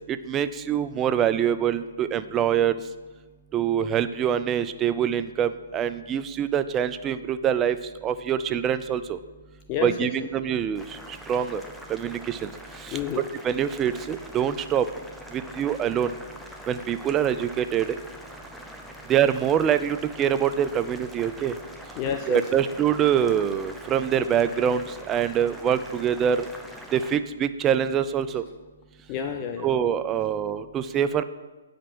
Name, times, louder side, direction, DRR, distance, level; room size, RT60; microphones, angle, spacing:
voice 1, 0.1-2.7 3.5-9.2 9.8-10.8 11.3-11.6 11.9-12.5 12.8-12.9 13.4-14.9 15.3-16.1 16.7-18.0 19.1-21.5 22.3-26.5 26.9-28.4 29.6-31.2, right 9 dB, 20° right, 12 dB, 0.4 m, -24 dB
voice 2, 9.7-10.1 12.9-13.3 22.0-22.6 29.1-29.7, left 8 dB, 30° left, 5 dB, 0.6 m, -30 dB
Boiling, 10.7-27.2, equal, ahead, 0.8 m, -43 dB
8.6 x 5.1 x 6.1 m, 1.2 s
hypercardioid pair, 135°, 0 cm